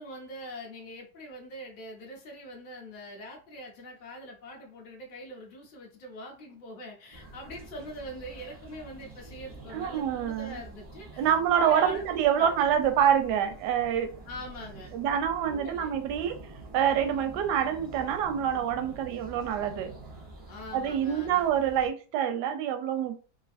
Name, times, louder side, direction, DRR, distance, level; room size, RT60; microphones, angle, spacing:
voice 1, 0.0-12.6 14.3-14.9 15.4-15.9 20.5-21.5, equal, 60° left, 0.5 m, -43 dB
sound 1, 7.1-21.9, right 3 dB, 40° right, 0.4 m, -47 dB
voice 2, 9.7-10.6 11.2-14.1 14.9-16.4 16.7-19.9 20.7-23.3, right 9 dB, 85° right, 1.2 m, -26 dB
3.1 x 2.5 x 2.5 m
omnidirectional pair, 1.8 m